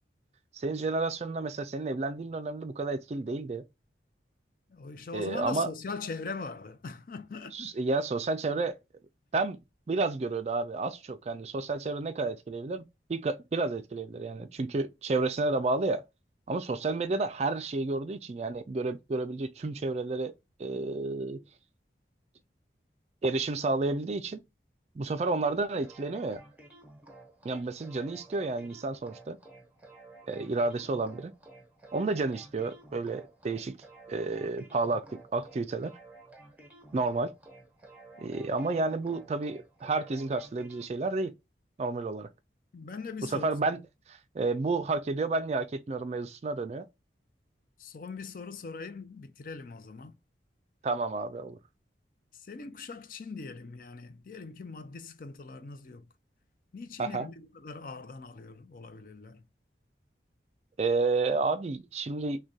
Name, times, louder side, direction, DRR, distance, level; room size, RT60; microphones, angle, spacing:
voice 1, 0.5-3.7 5.1-5.7 7.5-8.8 9.3-9.6 9.9-12.8 13.1-16.0 16.5-20.3 20.6-21.4 23.2-24.4 25.0-26.4 27.4-29.4 30.3-31.3 31.9-33.8 34.1-35.9 36.9-37.3 38.2-41.3 41.8-42.3 43.3-43.8 44.1-46.9 50.8-51.6 57.0-57.3 60.8-62.4, right 3 dB, 35° right, 0.3 m, -31 dB
voice 2, 4.7-7.7 42.7-43.5 47.8-50.2 52.3-56.1 56.7-59.4, left 4 dB, 50° left, 0.5 m, -41 dB
sound 1, 25.8-40.9, right 2 dB, 10° right, 0.7 m, -53 dB
6.2 x 2.2 x 2.7 m
head